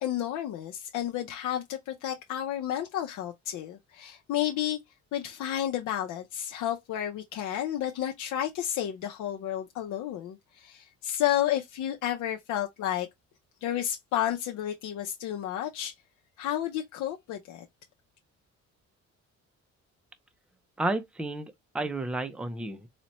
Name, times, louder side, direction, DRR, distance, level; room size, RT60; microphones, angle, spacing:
voice 1, 0.0-4.8 5.1-13.1 13.6-15.9 16.4-17.7, left 11 dB, 90° left, 0.6 m, -31 dB
voice 2, 20.8-22.9, right 2 dB, 5° right, 0.4 m, -32 dB
4.1 x 2.1 x 2.9 m
cardioid pair, 145°, 29 cm